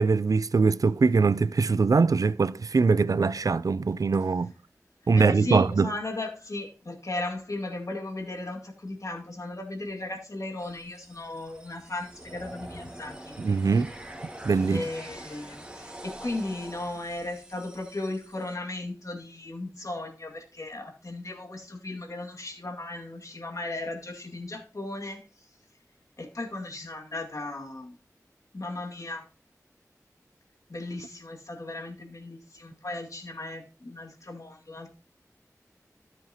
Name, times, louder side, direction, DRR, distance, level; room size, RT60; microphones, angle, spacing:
voice 1, 0.0-4.5 5.1-5.9 13.4-13.9 14.4-14.8, right 4 dB, 70° right, 0.4 m, -22 dB
voice 2, 5.1-13.4 14.7-25.2 26.2-28.0 28.5-29.2 30.7-34.9, left 2 dB, 60° left, 2.2 m, -36 dB
sound 1, 10.6-18.5, right 1 dB, 15° right, 1.8 m, -45 dB
13.5 x 7.2 x 2.9 m
wide cardioid pair, 65°, 6 cm